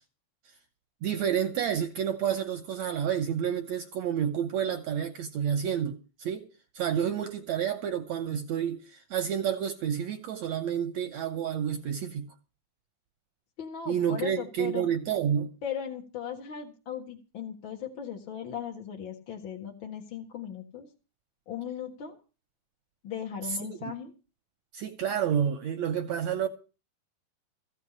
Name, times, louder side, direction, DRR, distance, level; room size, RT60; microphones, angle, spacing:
voice 1, 1.0-6.5 6.7-12.3 13.9-15.5 23.6-23.7 24.7-26.5, right 8 dB, 70° right, 1.8 m, -29 dB
voice 2, 13.6-14.9 15.6-20.9 21.5-22.2 23.0-24.1, left 8 dB, 45° left, 1.8 m, -37 dB
15.0 x 5.8 x 9.8 m
omnidirectional pair, 4.0 m